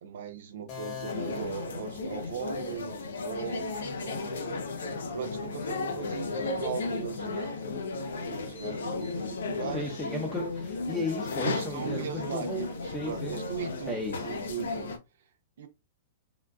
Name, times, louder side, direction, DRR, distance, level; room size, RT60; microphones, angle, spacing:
voice 1, 0.0-7.8 8.2-10.0 11.4-14.9 15.6-15.7, right 7 dB, 65° right, 0.8 m, -39 dB
sound 1, 0.7-2.6, left 7 dB, 40° left, 1.1 m, -43 dB
sound 2, 1.1-15.0, left 3 dB, 75° left, 0.7 m, -34 dB
voice 2, 9.7-12.7 12.9-13.3 13.9-14.2, left 1 dB, 5° left, 0.8 m, -34 dB
3.6 x 2.4 x 2.3 m
hypercardioid pair, 115°, 0 cm